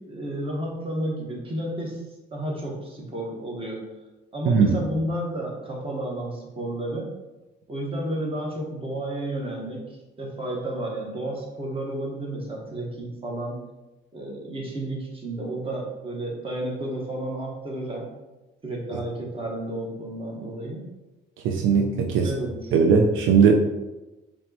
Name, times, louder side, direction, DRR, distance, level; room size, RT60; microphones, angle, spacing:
voice 1, 0.0-2.0 2.3-3.8 4.3-7.1 7.7-13.6 14.1-18.1 18.6-20.9 22.1-22.7, right 1 dB, 25° right, -2 dB, 1.3 m, -31 dB
voice 2, 4.5-4.8 18.9-19.0 21.4-22.3 22.7-23.5, right 6 dB, 80° right, 3 dB, 0.4 m, -19 dB
4.5 x 3.0 x 2.9 m, 1.1 s
cardioid pair, 90°, 20 cm